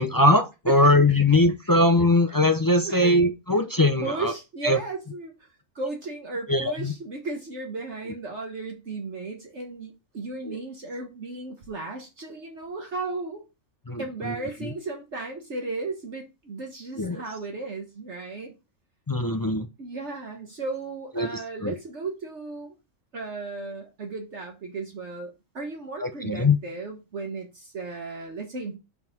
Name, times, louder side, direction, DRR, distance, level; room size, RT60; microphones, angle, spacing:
voice 1, 0.0-4.3 4.6-4.8 6.5-6.9 10.4-10.6 13.9-14.4 14.6-14.7 17.0-17.2 19.1-19.7 21.2-21.3 21.6-21.7 26.0-26.6, left 2 dB, 30° left, 0.4 m, -21 dB
voice 2, 0.7-1.2 1.6-1.8 2.8-3.2 4.0-5.5 5.7-13.4 14.0-18.5 19.8-22.7 23.1-28.8, right 3 dB, 60° right, 1.6 m, -35 dB
5.7 x 4.8 x 6.0 m
omnidirectional pair, 1.4 m